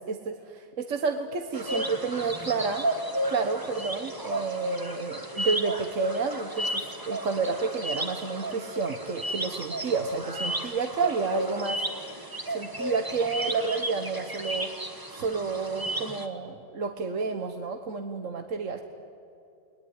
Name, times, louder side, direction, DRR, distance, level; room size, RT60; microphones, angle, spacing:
voice 1, 0.0-2.9 3.3-11.8 12.5-14.7 15.1-18.8, right 5 dB, 50° right, 6 dB, 1.5 m, -30 dB
sound 1, 1.5-16.3, right 1 dB, 15° right, 1.4 m, -33 dB
29.0 x 20.0 x 9.7 m, 2.6 s
omnidirectional pair, 1.9 m